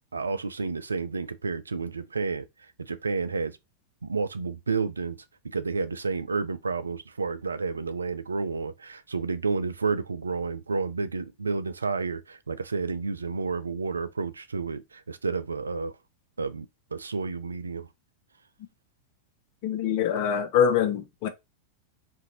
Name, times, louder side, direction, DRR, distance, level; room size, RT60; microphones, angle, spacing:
voice 1, 0.1-2.4 2.9-3.5 4.0-5.2 5.5-14.8 15.1-15.9 16.4-16.7 16.9-17.9, right 4 dB, 75° right, 0.3 m, -30 dB
voice 2, 19.6-21.3, left 8 dB, 45° left, 0.7 m, -24 dB
3.8 x 2.6 x 2.8 m
figure-of-eight pair, 90°, 0 cm